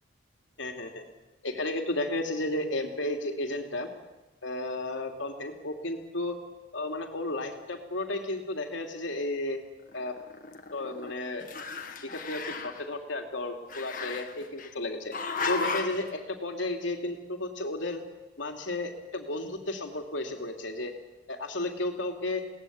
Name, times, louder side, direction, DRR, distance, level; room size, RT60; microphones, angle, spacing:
voice 1, 0.6-1.0 1.4-3.9 4.4-6.4 6.7-9.6 9.9-10.2 10.7-11.4 12.1-15.1 15.5-18.0 18.4-20.9 21.3-22.4, left 2 dB, 70° left, 4 dB, 2.8 m, -33 dB
Growling, 9.9-11.1 11.4-12.8 13.7-14.7 15.1-16.1, left 4 dB, 45° left, 1.7 m, -35 dB
22.0 x 18.0 x 8.7 m, 1.0 s
head